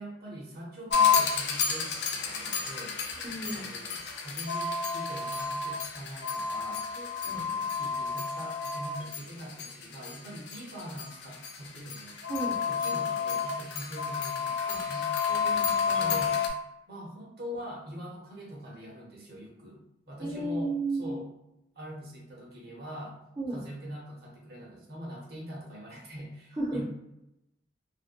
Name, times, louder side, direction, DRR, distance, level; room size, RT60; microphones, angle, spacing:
voice 1, 0.0-3.0 3.5-6.9 7.3-12.2 12.7-15.1 16.0-16.4 16.9-19.8 20.1-20.7 21.0-21.3 21.7-23.2 23.5-26.8, equal, 55° right, -3 dB, 0.8 m, -43 dB
sound 1, 0.9-16.5, left 6 dB, 65° left, 0.4 m, -30 dB
voice 2, 3.2-3.7 7.0-7.5 12.3-12.6 14.7-15.0 15.3-16.3 20.2-21.2 23.4-23.6 26.6-26.8, right 2 dB, 25° right, -7 dB, 0.5 m, -34 dB
2.5 x 2.1 x 2.5 m, 0.87 s
head